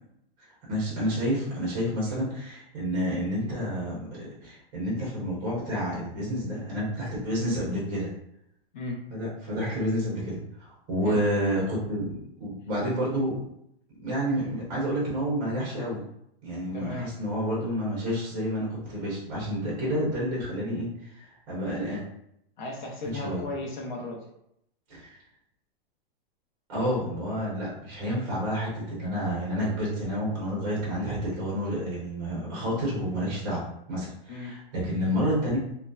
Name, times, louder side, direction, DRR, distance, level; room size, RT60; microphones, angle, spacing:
voice 1, 0.7-8.1 9.1-13.4 14.0-16.0 16.4-22.0 23.0-23.4 24.9-25.2 26.7-33.6 33.9-35.6, equal, 20° right, -6 dB, 0.6 m, -29 dB
voice 2, 16.7-17.1 22.6-24.2 34.3-34.5, left 2 dB, 50° left, 0 dB, 0.6 m, -35 dB
2.6 x 2.1 x 2.2 m, 0.76 s
supercardioid pair, 180°, 31 cm